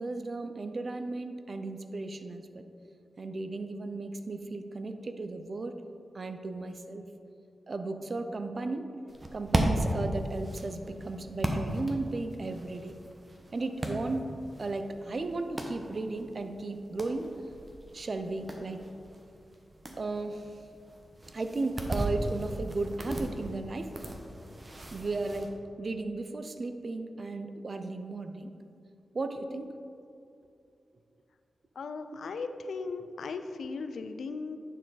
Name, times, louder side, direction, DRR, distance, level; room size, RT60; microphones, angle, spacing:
voice 1, 0.0-2.6 3.2-5.8 6.1-7.0 7.7-8.9 9.3-13.0 13.5-14.3 14.6-17.3 17.9-18.8 20.0-20.6 21.3-23.9 24.9-28.5 29.1-29.7 33.0-33.1, right 3 dB, 55° right, 8 dB, 0.5 m, -35 dB
sound 1, 9.1-25.5, right 1 dB, 35° right, 1.0 m, -37 dB
voice 2, 31.8-34.6, left 4 dB, 80° left, 9 dB, 0.4 m, -37 dB
9.9 x 4.5 x 4.0 m, 2.6 s
cardioid pair, 45°, 0 cm